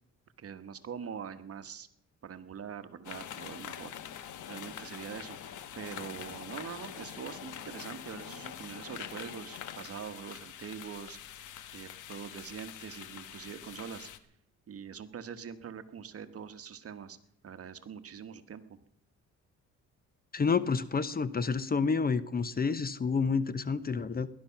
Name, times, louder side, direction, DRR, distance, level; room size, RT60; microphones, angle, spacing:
voice 1, 0.4-1.9 2.2-4.0 4.5-11.5 11.7-14.1 14.7-17.2 17.4-18.6, right 7 dB, 50° right, 10 dB, 1.3 m, -43 dB
sound 1, 3.0-14.2, left 10 dB, 75° left, 1.3 m, -44 dB
voice 2, 20.3-24.3, left 5 dB, 30° left, 15 dB, 0.9 m, -29 dB
19.0 x 11.5 x 5.8 m, 0.75 s
cardioid pair, 90°, 30 cm